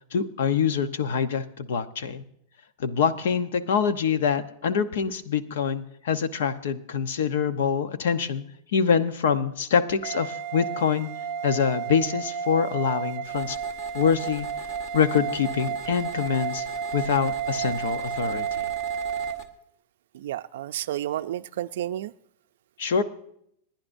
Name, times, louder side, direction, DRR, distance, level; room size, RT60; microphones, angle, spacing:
voice 1, 0.1-2.2 2.8-8.4 8.7-11.1 11.4-13.6 13.9-14.5 14.9-16.6 16.9-18.7 22.8-23.0, left 6 dB, 70° left, 11 dB, 0.9 m, -25 dB
sound 1, 10.0-19.4, right 7 dB, 25° right, 0.8 m, -32 dB
sound 2, 13.2-19.5, equal, 20° left, 1.1 m, -44 dB
voice 2, 20.1-22.1, right 12 dB, 65° right, 11 dB, 0.4 m, -31 dB
27.0 x 10.5 x 2.6 m, 0.71 s
supercardioid pair, 180°, 0 cm